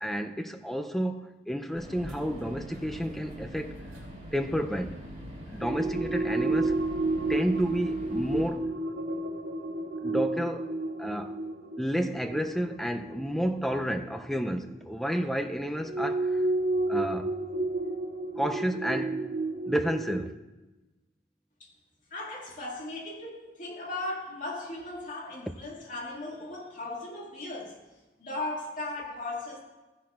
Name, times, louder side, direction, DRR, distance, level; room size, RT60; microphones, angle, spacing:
voice 1, 0.0-3.8 4.3-5.0 5.5-6.8 7.3-8.7 10.0-10.7 11.0-11.4 11.8-16.4 16.9-17.3 18.4-19.2 19.7-20.3, equal, ahead, 0.4 m, -31 dB
sound 1, 1.7-8.5, equal, 40° right, 3.1 m, -43 dB
sound 2, 5.6-14.8 15.8-20.3, right 2 dB, 65° right, 2.1 m, -31 dB
voice 2, 22.1-27.8 28.2-29.6, left 2 dB, 45° left, 2.0 m, -37 dB
15.0 x 10.5 x 2.4 m
head